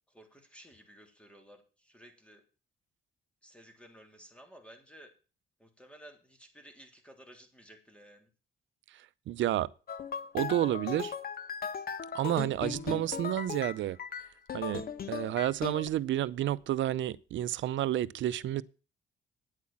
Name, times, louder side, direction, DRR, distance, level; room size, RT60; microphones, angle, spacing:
voice 1, 0.1-2.4 3.4-5.1 5.6-8.3, equal, 5° left, 3.3 m, -55 dB
voice 2, 9.3-9.7 10.3-11.1 12.1-14.0 14.5-14.8 15.1-18.6, right 13 dB, 70° right, 0.6 m, -30 dB
sound 1, 9.9-15.9, left 7 dB, 50° left, 1.1 m, -38 dB
9.7 x 8.4 x 7.3 m
cardioid pair, 90°, 20 cm